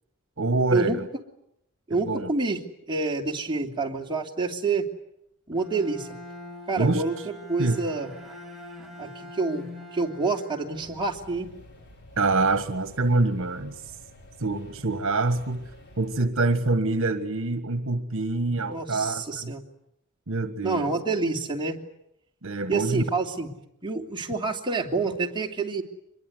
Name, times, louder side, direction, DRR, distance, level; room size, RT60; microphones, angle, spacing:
voice 1, 0.4-1.1 1.9-2.3 6.8-7.0 7.6-7.8 12.2-13.7 14.4-15.6 16.0-19.5 20.3-20.9 22.4-23.0, right 2 dB, 65° right, 10 dB, 1.6 m, -25 dB
voice 2, 1.9-2.6 2.9-4.9 5.5-6.1 6.7-7.1 7.5-8.1 9.0-11.5 18.7-19.6 20.6-21.8 22.7-23.5 23.8-25.8, right 3 dB, 20° right, 0 dB, 3.1 m, -27 dB
Bowed string instrument, 5.5-11.5, left 1 dB, ahead, 5.7 m, -44 dB
sound 1, 10.7-16.3, left 1 dB, 55° left, 4.6 m, -50 dB
25.5 x 22.0 x 9.6 m, 0.78 s
head